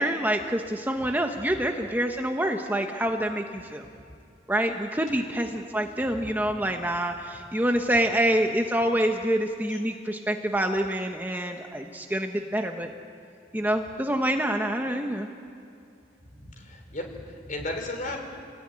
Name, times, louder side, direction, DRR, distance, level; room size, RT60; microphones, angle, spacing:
voice 1, 0.0-3.8 4.5-12.9 13.5-15.3, right 1 dB, 10° right, 3 dB, 1.2 m, -26 dB
voice 2, 6.0-6.6 9.7-9.8 16.3-18.2, left 1 dB, 45° left, 3 dB, 5.2 m, -36 dB
29.0 x 20.5 x 9.9 m, 2.6 s
head